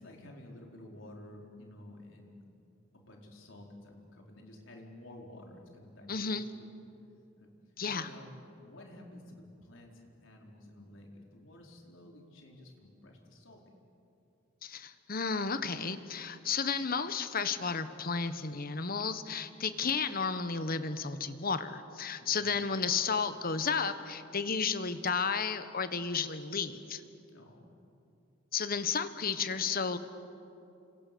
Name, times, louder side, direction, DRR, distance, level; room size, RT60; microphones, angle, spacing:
voice 1, 0.0-2.4 2.9-6.6 7.4-7.5 7.9-8.3 8.6-13.6 22.2-22.5 27.3-27.7, left 1 dB, 85° left, 0 dB, 4.4 m, -52 dB
voice 2, 6.1-6.5 7.8-8.1 14.6-27.0 28.5-30.0, left 5 dB, 50° left, 11 dB, 1.3 m, -33 dB
30.0 x 26.0 x 6.9 m, 2.7 s
head